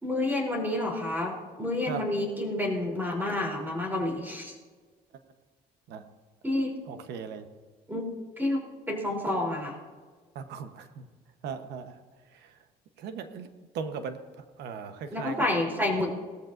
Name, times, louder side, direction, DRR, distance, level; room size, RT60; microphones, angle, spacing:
voice 1, 0.0-4.6 6.4-6.7 7.9-8.0 8.4-9.8 15.1-16.2, left 1 dB, 10° right, -1 dB, 3.4 m, -29 dB
voice 2, 6.9-7.5 10.3-11.1 11.4-12.0 12.3-12.5 13.0-13.5 13.7-14.2 14.6-15.5, right 6 dB, 80° right, 9 dB, 1.1 m, -38 dB
18.5 x 13.5 x 2.6 m, 1.4 s
cardioid pair, 110°, 17 cm